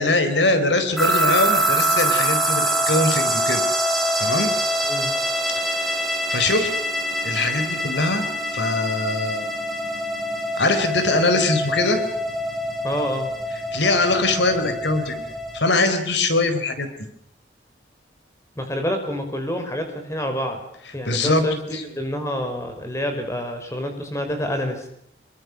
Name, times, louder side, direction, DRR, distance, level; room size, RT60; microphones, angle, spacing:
voice 1, 0.0-3.7 4.2-4.5 5.5-5.7 6.3-6.7 7.2-8.2 8.5-9.5 10.5-12.0 13.7-15.2 15.5-16.9 21.0-21.4 21.7-21.8, left 2 dB, 80° left, 8 dB, 4.3 m, -22 dB
sound 1, 1.0-15.6, right 1 dB, ahead, 3.5 m, -24 dB
voice 2, 12.8-13.3 18.6-20.6 20.9-24.9, equal, 15° left, 5 dB, 5.3 m, -27 dB
27.0 x 23.5 x 6.4 m, 0.70 s
head